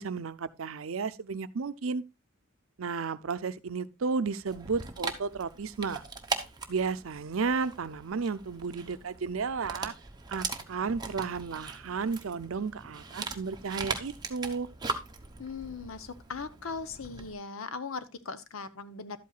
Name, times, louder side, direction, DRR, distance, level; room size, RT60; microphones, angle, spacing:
voice 1, 0.0-2.0 2.8-6.0 6.7-9.9 10.3-14.7, right 5 dB, 75° right, 0.6 m, -33 dB
Dog, 4.5-17.3, right 4 dB, 20° right, 1.0 m, -40 dB
voice 2, 15.4-19.2, left 4 dB, 85° left, 0.8 m, -39 dB
12.0 x 8.4 x 2.4 m
head